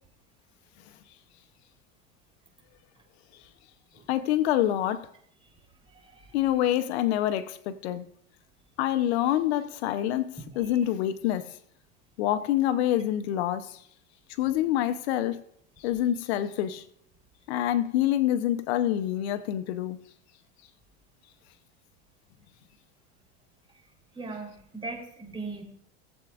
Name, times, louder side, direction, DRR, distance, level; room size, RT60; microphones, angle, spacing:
voice 1, 4.1-5.1 6.3-8.1 8.8-11.6 12.2-13.8 14.4-15.4 15.8-16.8 17.5-20.0, left 12 dB, 75° left, 0.8 m, -26 dB
voice 2, 5.9-6.4 10.6-10.8 24.1-25.6, right 3 dB, 15° right, 3.7 m, -39 dB
19.5 x 7.9 x 2.5 m
supercardioid pair, 120°, 32 cm